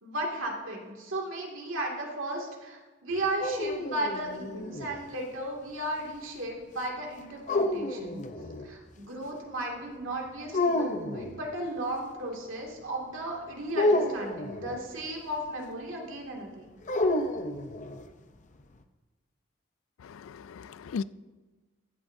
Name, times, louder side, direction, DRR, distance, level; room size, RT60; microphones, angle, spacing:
voice 1, 0.0-8.2 8.6-16.8, right 1 dB, 85° right, 2.3 m, -35 dB
sound 1, 3.1-5.0 7.5-8.7 10.5-11.3 13.7-14.8 16.9-18.1, left 2 dB, 40° left, 0.6 m, -29 dB
voice 2, 20.0-21.0, left 5 dB, 90° left, 0.4 m, -37 dB
15.0 x 11.5 x 2.7 m
head